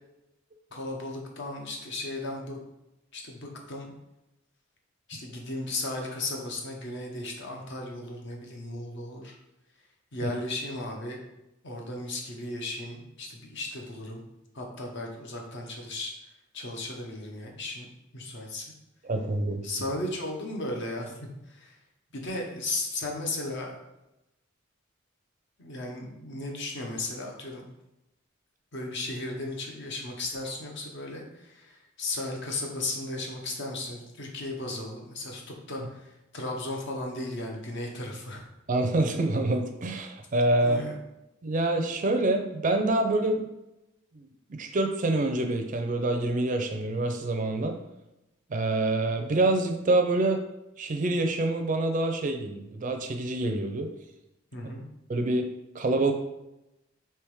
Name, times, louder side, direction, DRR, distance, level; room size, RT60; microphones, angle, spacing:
voice 1, 0.7-2.6 3.1-3.9 5.1-9.4 10.1-11.2 11.6-14.2 14.5-16.1 16.5-17.9 18.1-18.7 19.6-21.8 22.1-23.8 25.6-27.7 28.7-38.4 40.6-41.0 54.5-54.9, left 2 dB, 60° left, 1 dB, 0.8 m, -35 dB
voice 2, 19.1-19.6 38.7-40.8 41.4-43.5 44.5-47.8 48.5-50.4 50.8-53.9 55.1-55.5 55.7-56.1, right 2 dB, 40° right, 5 dB, 0.5 m, -26 dB
3.5 x 2.9 x 4.7 m, 0.93 s
head